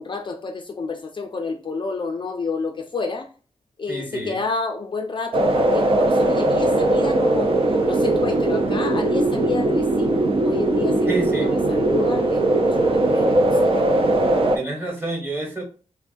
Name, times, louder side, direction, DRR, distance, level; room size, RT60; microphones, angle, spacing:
voice 1, 0.0-3.3 3.8-13.9, left 4 dB, 45° left, 0.4 m, -30 dB
voice 2, 3.9-4.4 11.1-11.6 14.5-15.6, right 2 dB, 20° right, 1.2 m, -27 dB
sound 1, 5.3-14.6, right 2 dB, 55° right, 0.5 m, -19 dB
3.4 x 2.2 x 2.5 m
wide cardioid pair, 125°, 11 cm